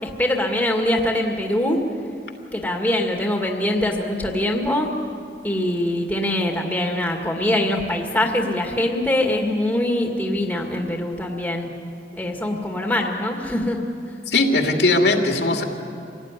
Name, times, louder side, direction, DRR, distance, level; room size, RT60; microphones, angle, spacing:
voice 1, 0.0-1.8 2.5-4.9 5.4-11.7 12.1-13.8, left 1 dB, 10° left, 1 dB, 2.0 m, -23 dB
voice 2, 14.3-15.6, left 2 dB, 75° left, 2 dB, 2.6 m, -19 dB
26.5 x 17.5 x 9.9 m, 2.5 s
head